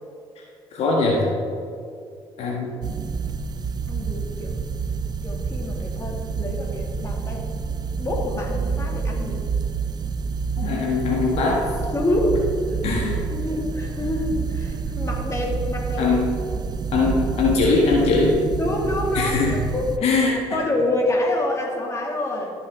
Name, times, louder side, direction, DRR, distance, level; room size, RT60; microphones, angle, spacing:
voice 1, 0.7-1.3 2.4-2.7 10.6-11.7 12.8-13.3 16.0-16.3 16.9-18.4 19.1-19.6 20.0-20.3, left 3 dB, 70° left, -2 dB, 1.6 m, -21 dB
sound 1, 2.8-20.0, right 5 dB, 40° right, 0.5 m, -28 dB
voice 2, 3.9-4.5 5.2-7.4 8.0-9.4 10.6-10.8 11.9-12.4 13.3-16.1 16.5-16.7 18.6-19.9 20.5-22.5, left 1 dB, 25° left, -1 dB, 2.3 m, -27 dB
14.5 x 6.3 x 3.7 m, 2.4 s
supercardioid pair, 75°, 11 cm